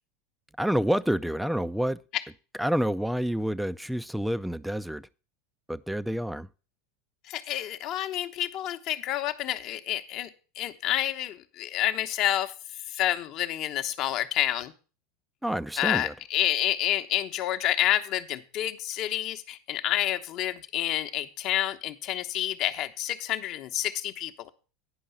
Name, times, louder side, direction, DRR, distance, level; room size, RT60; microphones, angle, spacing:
voice 1, 0.6-2.0 2.6-5.1 5.7-6.5 15.4-16.1, equal, ahead, 0.5 m, -28 dB
voice 2, 7.3-10.3 10.6-12.5 12.9-14.7 15.8-24.5, left 12 dB, 50° left, 0.9 m, -29 dB
10.0 x 5.5 x 6.9 m
hypercardioid pair, 90°, 0 cm